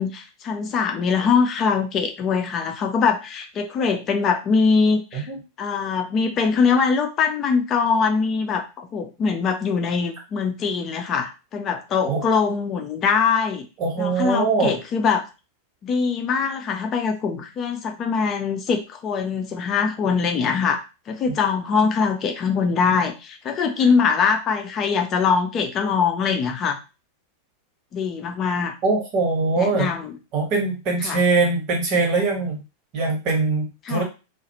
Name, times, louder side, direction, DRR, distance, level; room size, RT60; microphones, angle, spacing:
voice 1, 0.0-5.3 5.6-13.7 14.0-15.2 15.8-26.8 27.9-28.7 29.6-30.2 31.0-31.2 33.8-34.0, left 5 dB, 30° left, 5 dB, 0.5 m, -22 dB
voice 2, 13.8-14.7 28.8-29.9 30.3-32.6 32.9-34.0, right 3 dB, 40° right, 0 dB, 1.1 m, -22 dB
2.3 x 2.2 x 2.8 m, 0.29 s
figure-of-eight pair, 90°, 0 cm